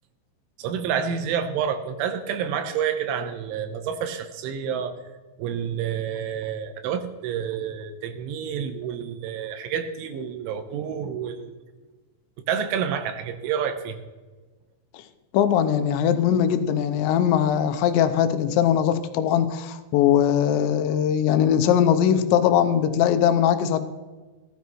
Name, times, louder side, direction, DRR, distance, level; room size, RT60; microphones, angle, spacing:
voice 1, 0.6-5.0 5.4-11.5 12.5-14.0, right 8 dB, 80° right, 7 dB, 3.4 m, -29 dB
voice 2, 15.3-23.8, left 9 dB, 80° left, 9 dB, 2.9 m, -20 dB
19.0 x 12.5 x 3.1 m, 1.3 s
omnidirectional pair, 5.5 m